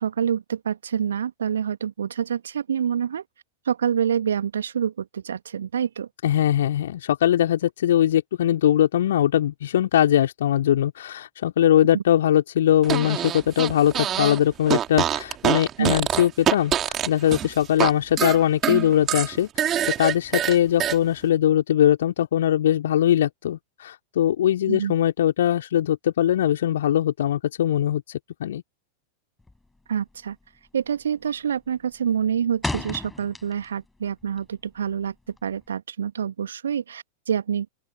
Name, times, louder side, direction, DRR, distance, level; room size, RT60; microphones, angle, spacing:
voice 1, 0.0-3.2 3.7-6.1 11.9-12.0 15.8-15.9 24.7-24.9 29.9-30.4 30.7-35.1 35.4-37.7, right 8 dB, 65° right, 1.8 m, -26 dB
voice 2, 6.2-28.6, left 11 dB, 60° left, 2.9 m, -21 dB
Fart, 12.8-14.4 14.7-17.9 18.2-21.0, right 10 dB, 30° right, 3.3 m, -25 dB
sound 1, 29.4-29.8 30.1-30.4 30.8-31.2 31.5-33.9 34.2-35.7, left 2 dB, 5° left, 6.2 m, -34 dB
open air
figure-of-eight pair, 90°, 0 cm